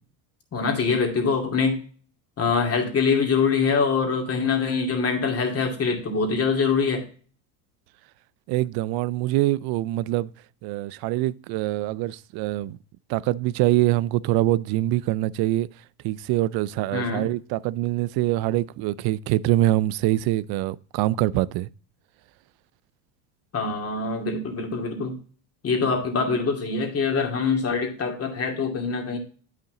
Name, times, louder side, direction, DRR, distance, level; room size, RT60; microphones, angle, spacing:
voice 1, 0.5-1.8 2.4-7.0 16.9-17.3 23.5-25.2 25.6-29.2, left 5 dB, 30° left, 2.4 m, -24 dB
voice 2, 8.5-10.3 10.6-12.8 13.1-15.7 16.0-21.7, right 16 dB, 50° right, 0.5 m, -24 dB
9.0 x 5.8 x 3.8 m
supercardioid pair, 110°, 49 cm